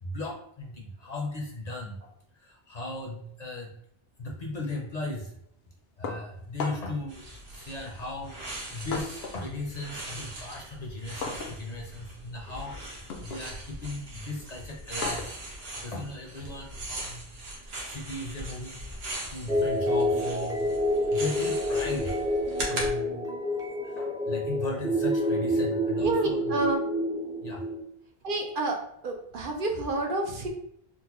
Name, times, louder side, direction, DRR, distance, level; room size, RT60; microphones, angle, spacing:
voice 1, 0.0-3.7 4.2-5.3 6.0-7.2 7.5-15.4 15.8-20.7 21.1-22.1 22.7-23.2 23.8-26.6 27.4-27.6, left 2 dB, 50° left, -1 dB, 0.6 m, -37 dB
sound 1, 6.0-7.1 8.0-9.5 9.8-17.1, left 4 dB, 80° left, 0.8 m, -40 dB
Dry Leaves, 7.1-22.9, right 1 dB, 80° right, 1.1 m, -40 dB
sound 2, 19.5-27.8, equal, 5° right, 0.4 m, -28 dB
voice 2, 26.0-26.8 28.2-28.8 29.0-30.5, right 2 dB, 60° right, 2 dB, 0.7 m, -29 dB
3.8 x 2.1 x 2.9 m, 0.69 s
omnidirectional pair, 1.0 m